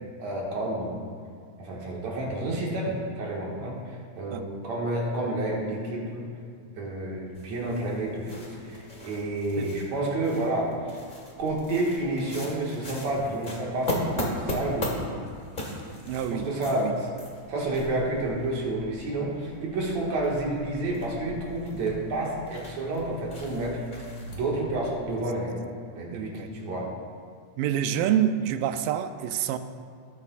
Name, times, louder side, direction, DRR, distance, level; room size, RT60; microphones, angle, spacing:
voice 1, 0.2-1.0 1.6-6.2 6.8-11.0 11.4-14.1 14.5-15.1 16.3-17.1 17.5-25.6 25.9-26.9, right 2 dB, 60° right, -3 dB, 2.8 m, -30 dB
sound 1, 7.3-25.0, left 1 dB, 50° left, 0.5 m, -38 dB
voice 2, 16.1-16.9 26.1-26.5 27.6-29.6, right 10 dB, 85° right, 9 dB, 2.2 m, -27 dB
18.5 x 8.6 x 2.4 m, 2.1 s
omnidirectional pair, 3.9 m